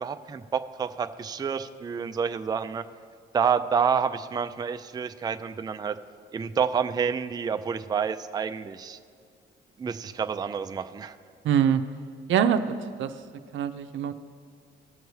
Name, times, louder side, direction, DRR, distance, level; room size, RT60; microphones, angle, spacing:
voice 1, 0.0-2.8 3.3-6.0 6.3-9.0 9.8-11.2, right 6 dB, 20° right, 9 dB, 0.4 m, -28 dB
voice 2, 11.4-11.8 12.3-13.1 13.5-14.1, right 8 dB, 75° right, 9 dB, 0.6 m, -24 dB
18.5 x 6.7 x 3.2 m, 2.1 s
cardioid pair, 90°, 20 cm